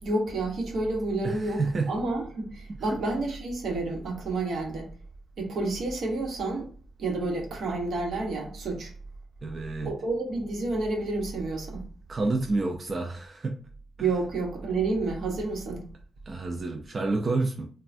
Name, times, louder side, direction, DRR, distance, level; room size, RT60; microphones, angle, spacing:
voice 1, 0.0-4.9 5.4-6.7 7.0-8.9 9.8-11.9 14.0-15.9, right 2 dB, 80° right, 1.0 m, -30 dB
voice 2, 1.2-1.9 2.7-3.0 9.4-9.9 12.1-13.6 14.0-14.1 16.3-17.7, right 3 dB, 35° right, 0.4 m, -29 dB
3.2 x 2.2 x 2.5 m
cardioid pair, 110°, 0 cm